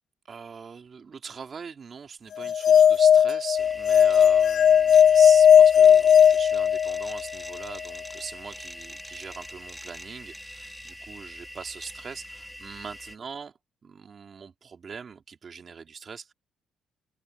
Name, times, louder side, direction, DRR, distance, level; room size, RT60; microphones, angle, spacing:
voice 1, 0.2-16.3, right 6 dB, 45° right, 2.5 m, -42 dB
sound 1, 2.4-7.2, left 8 dB, 65° left, 0.4 m, -17 dB
sound 2, 3.6-13.2, equal, 5° left, 2.6 m, -43 dB
cardioid pair, 95°, 0 cm